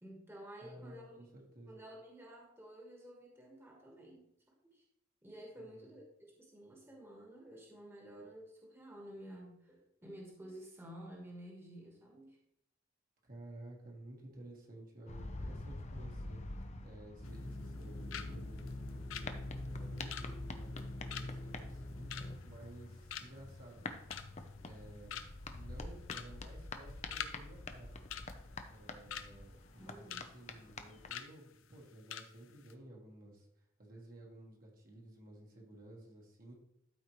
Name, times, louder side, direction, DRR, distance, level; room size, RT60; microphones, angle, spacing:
voice 1, 0.0-1.3 1.6-4.3 4.7-4.8 5.2-12.4 29.8-30.3, right 1 dB, 10° right, -2 dB, 1.4 m, -52 dB
voice 2, 0.6-1.8 5.6-5.9 13.2-16.4 16.8-19.3 19.7-23.9 24.6-25.1 25.5-28.0 28.7-33.5 33.8-36.5, right 1 dB, 45° right, -1 dB, 1.5 m, -54 dB
sound 1, 15.1-31.2, left 2 dB, 35° left, 0.6 m, -48 dB
sound 2, 17.2-17.8 18.1-18.3 18.6-22.8 23.1-23.5 23.9-24.5 24.8-24.9 25.1-25.5 26.0-26.3 26.6-27.4 27.6-27.8 28.1-29.3 29.7-30.3 30.6-30.7 31.1-31.3 31.7-31.8 32.1-32.3 32.6-32.7, left 9 dB, 80° left, 0.6 m, -45 dB
sound 3, 17.2-22.4, left 1 dB, 60° left, 1.7 m, -44 dB
12.5 x 4.4 x 3.1 m, 0.76 s
head